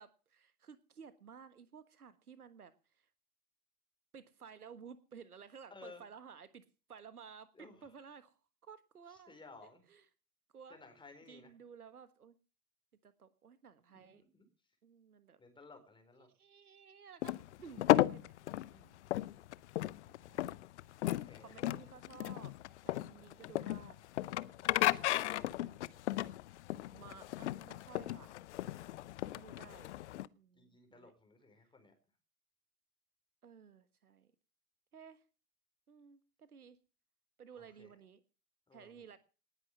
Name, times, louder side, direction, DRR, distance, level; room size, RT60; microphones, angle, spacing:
voice 1, 0.0-3.1 4.1-8.4 8.6-9.4 9.9-10.1 10.5-10.8 11.3-12.4 13.0-14.2 14.8-15.4 16.2-18.3 18.7-19.0 20.1-20.5 21.4-22.5 22.8-24.1 24.6-24.9 26.9-28.3 29.2-29.9 30.3-31.1 33.4-34.3 34.9-35.2 35.9-36.8 37.4-38.2 38.7-39.2, right 6 dB, 75° right, 14 dB, 1.5 m, -55 dB
voice 2, 5.7-6.0 7.6-7.8 9.3-9.8 10.7-11.5 13.9-14.4 15.4-16.3 21.0-21.7 24.6-25.7 28.7-29.1 30.5-31.9 37.8-37.9 38.7-38.9, left 3 dB, 10° left, 6 dB, 4.3 m, -57 dB
sound 1, 17.2-30.3, left 15 dB, 50° left, 0.7 m, -35 dB
19.0 x 9.6 x 5.5 m, 0.36 s
figure-of-eight pair, 95°, 45 cm